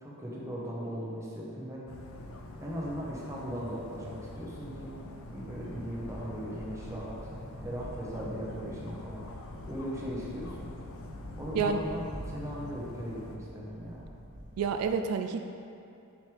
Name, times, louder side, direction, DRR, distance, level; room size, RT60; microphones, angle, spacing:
voice 1, 0.0-1.8 2.6-5.0 5.3-7.3 7.6-9.2 9.6-10.7 11.3-14.0, equal, 15° right, -5 dB, 1.0 m, -38 dB
Dog, 1.9-13.4, left 2 dB, 65° left, 0.5 m, -46 dB
sound 1, 4.2-14.9, equal, 60° right, 1.0 m, -47 dB
voice 2, 14.6-15.4, right 6 dB, 80° right, 7 dB, 0.3 m, -28 dB
6.4 x 5.2 x 3.3 m, 2.7 s
head